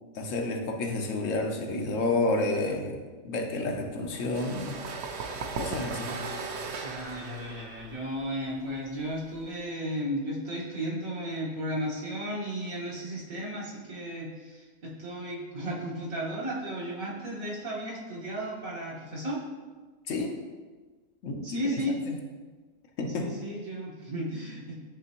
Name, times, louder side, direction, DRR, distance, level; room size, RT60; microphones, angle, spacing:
voice 1, 0.1-4.8 5.6-6.1 20.1-20.4 21.2-21.6 22.1-22.2 23.0-23.3, left 2 dB, 70° left, 2 dB, 1.1 m, -30 dB
sound 1, 4.1-9.6, right 4 dB, 60° right, 0.8 m, -37 dB
voice 2, 6.8-19.4 21.4-21.9 23.2-24.8, equal, 90° right, -6 dB, 1.9 m, -34 dB
9.8 x 3.3 x 3.0 m, 1.4 s
omnidirectional pair, 1.4 m